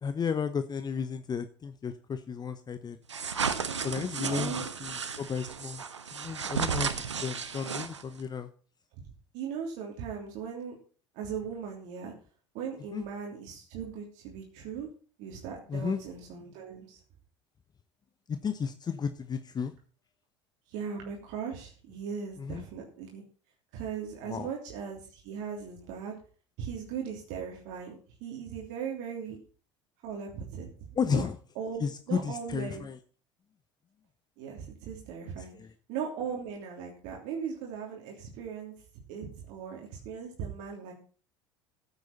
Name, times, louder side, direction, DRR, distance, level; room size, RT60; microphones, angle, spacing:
voice 1, 0.0-3.0 3.8-5.8 6.1-8.5 12.9-13.0 15.7-16.0 18.3-19.7 22.4-22.6 24.2-24.5 31.0-31.4 31.8-33.0 35.4-35.7, left 6 dB, 30° left, 11 dB, 1.0 m, -33 dB
sound 1, 3.1-8.2, right 6 dB, 90° right, 1.1 m, -33 dB
voice 2, 4.2-4.7 9.3-10.7 11.1-12.1 12.5-14.9 15.2-17.0 20.7-23.2 23.7-26.1 26.6-29.4 30.0-30.7 31.1-31.3 31.6-32.9 34.4-35.6 35.9-38.7 39.1-40.9, right 7 dB, 60° right, 0 dB, 3.1 m, -38 dB
14.5 x 8.3 x 4.2 m, 0.40 s
figure-of-eight pair, 70°, 15 cm